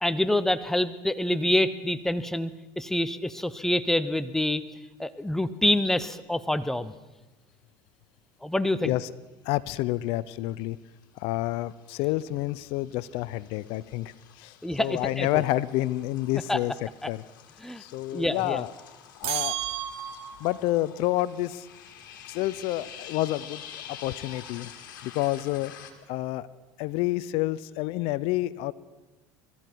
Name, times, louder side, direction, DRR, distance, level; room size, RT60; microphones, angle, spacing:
voice 1, 0.0-2.5 2.8-4.6 5.0-6.9 8.4-8.9 14.6-15.4 16.5-16.6 17.0-17.1 17.6-17.8 18.1-18.6, left 1 dB, 5° left, 13 dB, 0.8 m, -26 dB
voice 2, 9.5-10.8 11.2-16.7 17.1-17.2 17.8-18.7 19.2-19.6 20.4-21.7 22.3-23.6 23.9-24.7 25.0-25.7 26.1-26.5 26.8-28.7, left 16 dB, 65° left, 19 dB, 0.5 m, -29 dB
sound 1, 9.6-10.1 10.4-25.9, left 9 dB, 85° left, 2.0 m, -48 dB
sound 2, 19.2-20.6, right 13 dB, 60° right, 1.3 m, -32 dB
22.5 x 14.0 x 4.6 m, 1.1 s
supercardioid pair, 95°, 10 cm